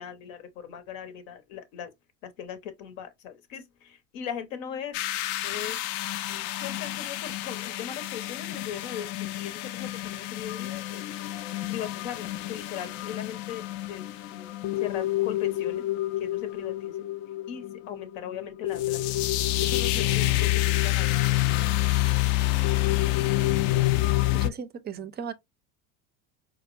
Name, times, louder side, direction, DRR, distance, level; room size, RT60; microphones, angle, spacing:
voice 1, 0.0-1.9 2.2-5.0 5.4-5.8 6.3-11.0 11.7-14.0 14.3-14.5 14.8-15.9 16.2-16.9 17.5-19.3 19.6-21.4, left 8 dB, 80° left, 0.9 m, -39 dB
sound 1, 4.9-24.5, left 16 dB, 60° left, 0.5 m, -28 dB
voice 2, 24.4-25.3, right 6 dB, 25° right, 0.4 m, -36 dB
4.3 x 2.0 x 2.4 m
supercardioid pair, 90°, 39 cm